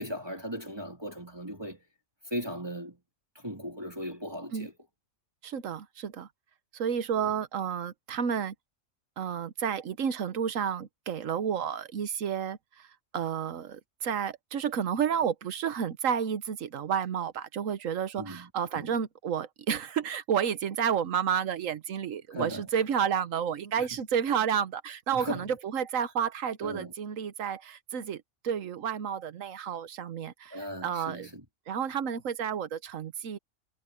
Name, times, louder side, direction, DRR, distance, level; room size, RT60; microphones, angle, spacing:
voice 1, 0.0-1.8 2.3-3.0 3.3-4.7 18.2-18.9 22.3-22.7 23.8-23.9 25.1-25.5 26.6-26.9 30.5-31.4, equal, 20° right, 3.2 m, -37 dB
voice 2, 5.4-6.3 6.7-8.5 9.2-12.9 13.1-31.3 31.7-33.4, right 8 dB, 70° right, 1.3 m, -31 dB
omnidirectional pair, 1.4 m